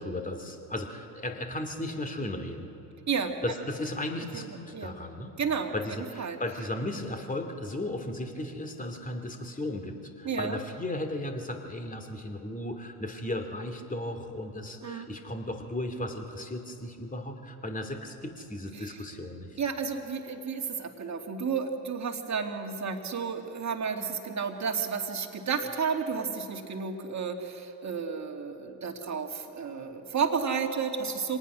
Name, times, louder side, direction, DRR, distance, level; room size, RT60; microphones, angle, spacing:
voice 1, 0.0-2.7 3.4-5.3 5.7-19.6, left 1 dB, 15° left, 5 dB, 2.7 m, -35 dB
voice 2, 5.4-5.7 6.2-6.4 10.2-10.6 14.8-15.1 19.6-31.4, right 6 dB, 35° right, 4 dB, 2.4 m, -32 dB
25.5 x 19.0 x 6.2 m, 2.9 s
hypercardioid pair, 60°, 47 cm